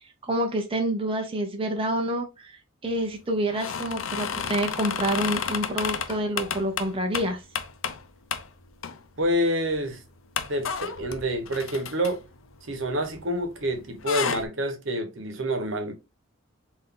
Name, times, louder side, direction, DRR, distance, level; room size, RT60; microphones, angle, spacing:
voice 1, 0.2-7.4, right 1 dB, 30° right, 0.6 m, -28 dB
sound 1, 3.5-8.0 8.3-8.5 8.8-9.3 9.7-9.8 10.3-13.4 13.7-14.4, left 7 dB, 80° left, 0.5 m, -32 dB
voice 2, 9.2-10.0 10.5-12.2 12.6-15.9, equal, 70° right, 1.0 m, -27 dB
3.9 x 2.6 x 3.6 m
head